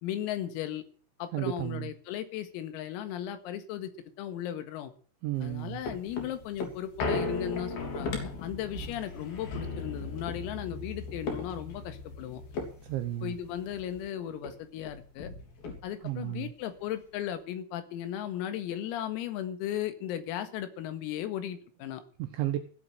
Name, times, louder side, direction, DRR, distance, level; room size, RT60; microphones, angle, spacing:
voice 1, 0.0-0.8 1.2-3.9 4.2-4.9 5.4-12.4 13.2-15.3 15.8-22.0, left 11 dB, 90° left, 4.4 m, -36 dB
voice 2, 1.3-1.9 5.2-5.8 12.8-13.3 16.0-16.5 22.2-22.6, right 13 dB, 75° right, 3.0 m, -33 dB
sound 1, 5.4-14.1 14.4-14.5 14.8-16.2 16.7-16.8, left 3 dB, 50° left, 4.4 m, -37 dB
16.0 x 7.9 x 7.8 m
omnidirectional pair, 5.9 m